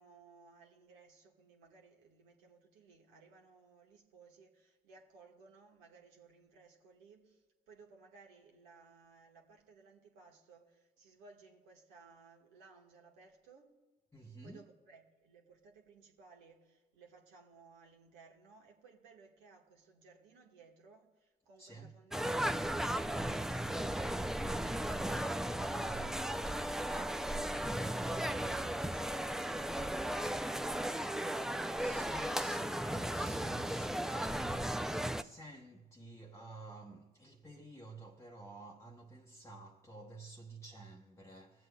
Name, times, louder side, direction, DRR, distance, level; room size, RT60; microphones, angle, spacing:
voice 1, 0.0-13.8 14.4-32.4, right 4 dB, 80° right, 1.4 m, -61 dB
voice 2, 14.1-14.6 21.6-22.0 25.7-26.2 31.8-41.7, right 2 dB, 15° left, 0.9 m, -52 dB
sound 1, 22.1-35.2, right 1 dB, ahead, 0.4 m, -36 dB
21.5 x 7.7 x 2.3 m
hypercardioid pair, 55°, 20 cm